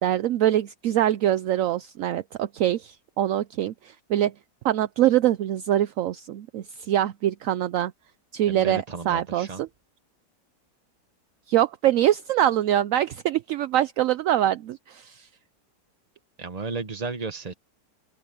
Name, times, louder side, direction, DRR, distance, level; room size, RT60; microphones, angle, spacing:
voice 1, 0.0-4.3 4.6-7.9 8.3-9.7 11.5-15.3, right 12 dB, 70° right, 0.8 m, -24 dB
voice 2, 8.5-9.6 16.4-17.5, right 4 dB, 25° right, 1.2 m, -33 dB
omnidirectional pair, 1.9 m